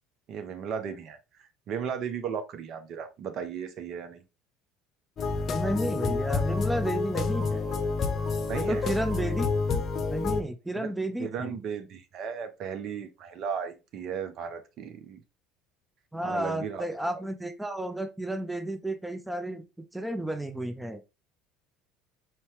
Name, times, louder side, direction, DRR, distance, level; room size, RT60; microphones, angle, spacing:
voice 1, 0.3-4.2 8.5-8.9 10.7-10.9 11.2-15.2 16.2-16.8, right 7 dB, 55° right, 0.7 m, -35 dB
sound 1, 5.2-10.4, left 4 dB, 45° left, 0.7 m, -28 dB
voice 2, 5.5-7.7 8.5-9.5 9.7-9.8 10.1-11.6 16.1-19.6 19.9-21.0, right 1 dB, 5° right, 0.5 m, -32 dB
4.4 x 2.8 x 3.1 m
hypercardioid pair, 75°, 0 cm